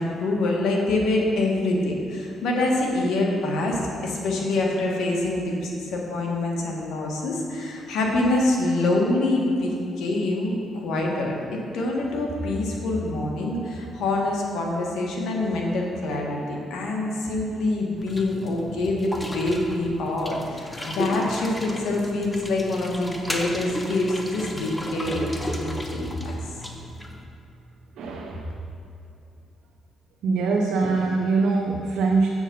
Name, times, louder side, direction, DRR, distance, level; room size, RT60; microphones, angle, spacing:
voice 1, 0.0-26.4, left 2 dB, 80° left, -1 dB, 1.6 m, -25 dB
sound 1, 18.0-27.2, left 1 dB, 15° left, 0.9 m, -34 dB
voice 2, 28.0-28.6 30.2-32.3, right 4 dB, 75° right, 0 dB, 0.7 m, -23 dB
7.5 x 7.1 x 5.5 m, 2.7 s
cardioid pair, 90°, 0 cm